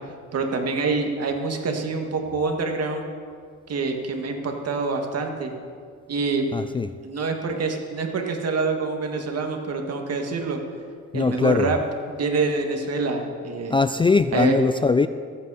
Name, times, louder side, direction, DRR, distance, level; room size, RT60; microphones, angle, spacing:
voice 1, 0.3-3.1 3.7-5.5 6.1-6.5 7.0-10.6 11.1-11.8 12.1-13.8 14.3-14.6, right 4 dB, 55° right, 3 dB, 2.0 m, -26 dB
voice 2, 6.5-6.9 11.1-11.7 13.7-15.1, left 4 dB, 15° left, 12 dB, 0.3 m, -21 dB
22.0 x 8.6 x 4.2 m, 2.1 s
cardioid pair, 90°, 30 cm